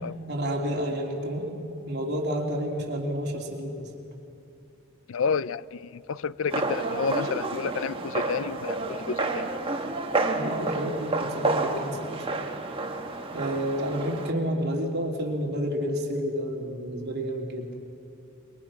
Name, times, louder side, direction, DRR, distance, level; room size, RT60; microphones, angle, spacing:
voice 1, 0.3-3.9 10.3-12.2 13.3-17.7, equal, 50° right, 3.2 m, -30 dB
voice 2, 5.1-9.5, left 5 dB, 65° left, 0.5 m, -30 dB
sound 1, 6.5-14.3, right 3 dB, 25° right, 1.4 m, -30 dB
26.5 x 23.0 x 6.1 m
head